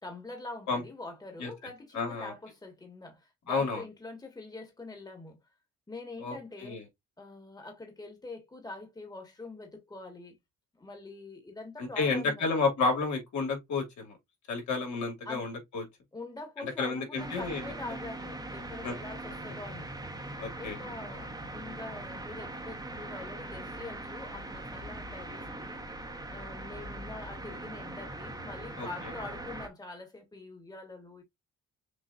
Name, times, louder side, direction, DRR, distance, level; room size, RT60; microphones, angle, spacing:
voice 1, 0.0-5.4 5.9-6.8 7.2-10.4 10.7-12.7 15.2-15.5 16.1-19.9 20.5-25.8 26.3-31.2, left 2 dB, 15° left, 1.6 m, -44 dB
voice 2, 1.9-2.3 3.5-3.8 6.2-6.8 11.8-14.2 14.5-15.8 16.8-17.6 18.8-18.9 20.4-20.8 28.8-28.9, left 4 dB, 70° left, 2.5 m, -31 dB
sound 1, 17.2-29.7, right 2 dB, 10° right, 1.1 m, -41 dB
6.5 x 2.6 x 2.5 m
cardioid pair, 90°, 30 cm